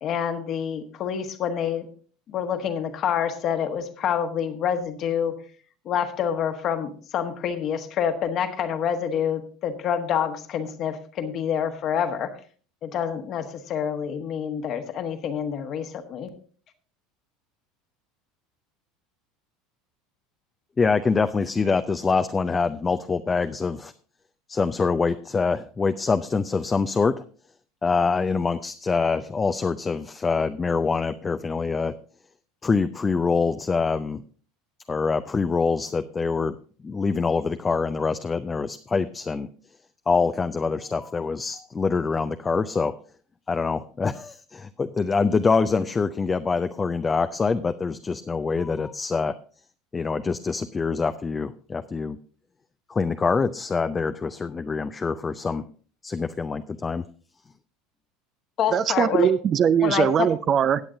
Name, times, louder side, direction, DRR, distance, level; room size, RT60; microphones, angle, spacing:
voice 1, 0.0-1.9 2.3-5.3 5.8-12.3 12.8-16.3 58.6-59.3 59.8-60.3, left 8 dB, 40° left, 8 dB, 1.3 m, -27 dB
voice 2, 20.8-23.9 24.5-27.2 27.8-31.9 32.6-34.2 34.9-36.5 36.8-39.5 40.1-42.9 43.5-49.3 49.9-52.2 52.9-55.6 56.0-57.0, left 4 dB, 20° left, 10 dB, 0.5 m, -25 dB
voice 3, 58.7-60.8, right 8 dB, 35° right, 15 dB, 0.4 m, -21 dB
17.0 x 8.6 x 2.7 m, 0.42 s
figure-of-eight pair, 70°, 0 cm